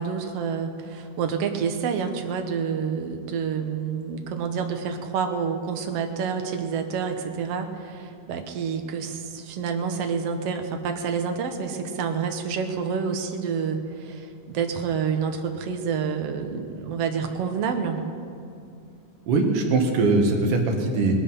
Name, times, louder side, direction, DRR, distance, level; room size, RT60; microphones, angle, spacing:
voice 1, 0.0-18.0, right 6 dB, 60° right, 5 dB, 1.9 m, -28 dB
voice 2, 19.3-21.2, right 3 dB, 80° right, 2 dB, 3.3 m, -21 dB
20.0 x 12.5 x 5.7 m, 2.4 s
omnidirectional pair, 3.7 m